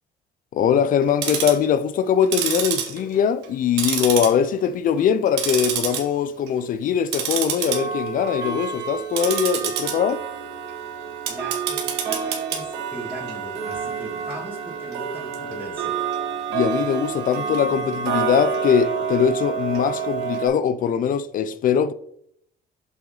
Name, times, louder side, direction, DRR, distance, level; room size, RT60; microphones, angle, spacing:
voice 1, 0.5-10.2 16.5-21.9, left 8 dB, 55° left, 0.5 m, -21 dB
Tick-tock, 1.0-1.6 2.2-3.5 3.8-4.7 5.0-6.0 6.4-6.6 7.1-20.5, right 7 dB, 85° right, 1.8 m, -27 dB
voice 2, 11.3-16.0, right 1 dB, 10° right, 2.0 m, -38 dB
7.7 x 5.7 x 3.9 m
cardioid pair, 110°, 17 cm